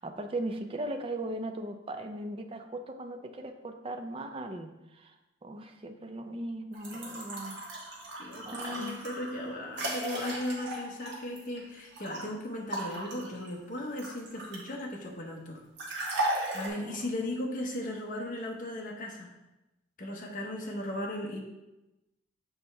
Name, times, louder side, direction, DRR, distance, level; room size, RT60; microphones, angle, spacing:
voice 1, 0.0-5.1 5.4-7.6 8.5-9.0 16.3-16.6 16.9-17.0, right 1 dB, 30° right, 6 dB, 0.4 m, -38 dB
sound 1, 6.7-12.2 12.7-14.8 15.8-16.7, right 1 dB, 60° right, 1.4 m, -36 dB
voice 2, 8.2-16.2 16.5-19.3 20.0-21.4, left 1 dB, 45° left, 0 dB, 0.9 m, -37 dB
6.9 x 4.2 x 3.4 m, 0.98 s
head